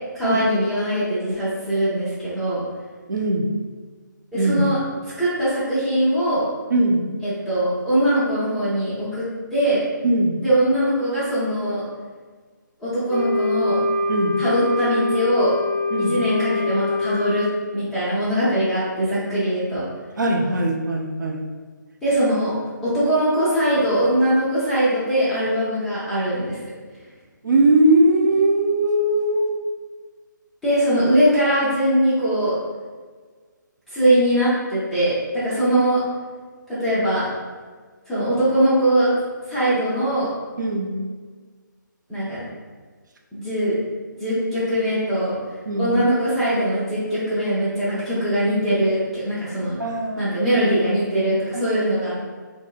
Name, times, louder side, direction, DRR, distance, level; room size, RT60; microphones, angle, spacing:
voice 1, 0.1-2.6 4.3-4.8 5.2-6.4 7.2-9.3 9.5-9.8 10.4-11.8 12.8-13.8 14.4-15.5 16.0-19.8 22.0-22.5 22.8-26.6 30.6-32.6 33.9-36.0 36.7-37.3 38.1-39.1 39.5-40.3 42.1-42.4 43.3-43.7 44.2-45.4 45.8-49.8 50.2-52.2, right 1 dB, 5° left, -13 dB, 0.6 m, -21 dB
voice 2, 3.1-3.5 4.3-4.6 6.7-7.1 10.0-10.4 14.1-14.4 15.9-16.2 20.2-21.4 27.4-29.6 40.6-40.9 45.7-45.9 49.8-50.3 51.5-51.6, right 1 dB, 65° right, 2 dB, 0.5 m, -20 dB
Wind instrument woodwind instrument, 13.1-17.6, left 3 dB, 70° left, 0.4 m, -24 dB
4.4 x 2.0 x 2.4 m, 1.5 s
figure-of-eight pair, 150°, 11 cm